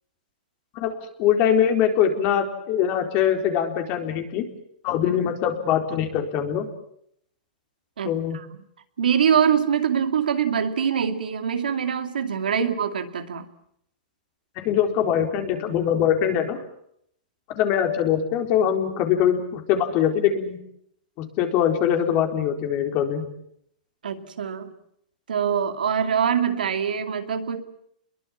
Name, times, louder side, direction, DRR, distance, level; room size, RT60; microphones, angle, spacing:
voice 1, 0.8-4.5 4.8-6.7 8.0-8.4 14.6-16.6 17.5-20.6 21.2-23.2, left 9 dB, 40° left, 5 dB, 4.2 m, -23 dB
voice 2, 8.0-8.4 9.0-13.5 24.0-24.7 25.3-27.6, right 7 dB, 90° right, 8 dB, 2.5 m, -24 dB
28.5 x 22.0 x 7.4 m, 0.72 s
hypercardioid pair, 135°, 5 cm